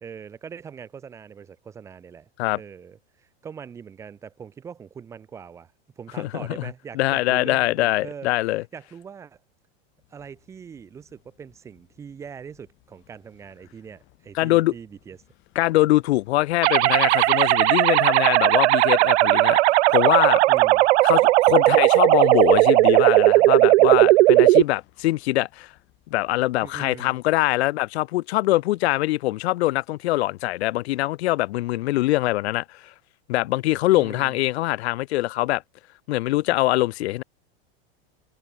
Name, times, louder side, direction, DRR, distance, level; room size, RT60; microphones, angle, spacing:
voice 1, 0.0-8.3 8.7-9.4 10.1-15.2 20.5-20.8 26.6-27.1 33.9-34.4, right 7 dB, 10° right, 0.5 m, -41 dB
voice 2, 6.2-8.6 14.3-14.7 15.6-19.6 19.9-20.4 21.0-25.7 26.1-32.9 33.3-35.6 36.1-37.2, left 17 dB, 75° left, 0.7 m, -23 dB
sound 1, 9.9-27.6, left 19 dB, 35° left, 6.4 m, -60 dB
sound 2, 16.6-24.6, right 18 dB, 85° right, 0.5 m, -17 dB
supercardioid pair, 160°, 33 cm